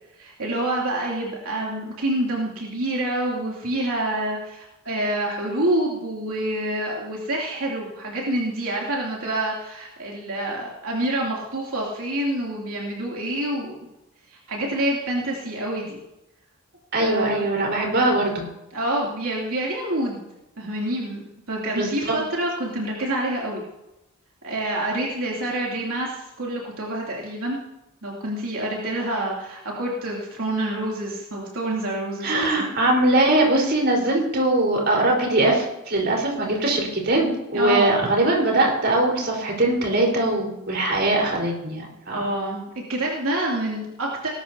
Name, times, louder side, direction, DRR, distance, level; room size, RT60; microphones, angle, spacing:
voice 1, 0.2-13.7 14.3-16.0 16.9-17.5 18.7-20.3 20.6-23.6 24.4-27.6 28.0-32.6 37.5-37.9 42.1-42.6 42.9-44.3, right 1 dB, 80° right, -4 dB, 2.9 m, -27 dB
voice 2, 16.9-18.5 21.8-21.9 32.2-42.3, right 2 dB, 50° right, -1 dB, 4.4 m, -21 dB
19.5 x 13.0 x 2.8 m, 0.90 s
head